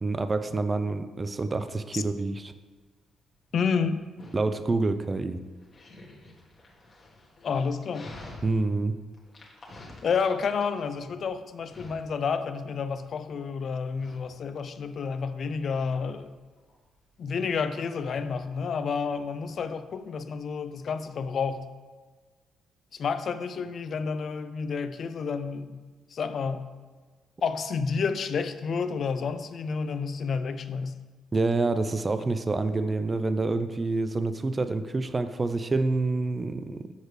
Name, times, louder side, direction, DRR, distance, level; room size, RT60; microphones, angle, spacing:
voice 1, 0.0-2.5 4.3-5.4 8.4-9.0 31.3-36.9, right 3 dB, 25° right, 10 dB, 0.3 m, -27 dB
Dog, 2.4-21.5, left 2 dB, 40° left, 1.2 m, -51 dB
voice 2, 3.5-4.1 7.4-8.1 10.0-16.3 17.2-21.7 22.9-25.8 26.1-26.7 27.4-31.0, left 5 dB, 55° left, 11 dB, 0.3 m, -30 dB
6.5 x 4.7 x 3.2 m, 1.4 s
cardioid pair, 90°, 0 cm